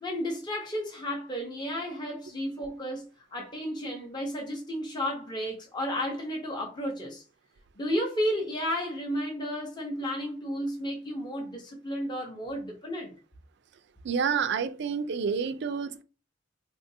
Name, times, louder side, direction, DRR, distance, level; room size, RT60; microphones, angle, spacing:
voice 1, 0.0-7.2 7.8-13.1, equal, 25° left, 0.7 m, -33 dB
voice 2, 14.0-16.0, right 6 dB, 60° right, 0.4 m, -29 dB
3.8 x 2.5 x 2.7 m
head